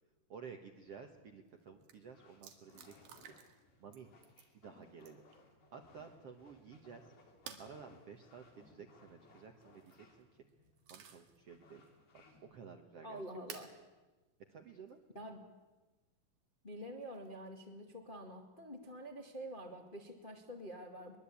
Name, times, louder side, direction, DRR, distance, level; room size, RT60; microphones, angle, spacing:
voice 1, 0.3-3.3 3.8-4.1 4.5-5.2 5.7-7.1 7.6-10.5 10.9-11.8 12.1-13.2 14.5-15.0, right 6 dB, 60° right, 5 dB, 1.8 m, -53 dB
sound 1, 0.8-12.4, left 3 dB, 85° left, 5.6 m, -65 dB
sound 2, 1.5-1.6 1.8-2.0 2.4-3.6 3.9-4.5 5.0-5.4 7.5-7.7 9.6-10.0 10.5-11.4 11.8-11.9 13.5-13.8 14.9-15.0 17.0-17.5, right 8 dB, 90° right, 3.8 m, -53 dB
voice 2, 13.0-13.7 15.1-15.4 16.6-21.2, equal, 20° left, 2 dB, 1.5 m, -47 dB
22.5 x 22.5 x 8.6 m, 1.2 s
omnidirectional pair, 4.2 m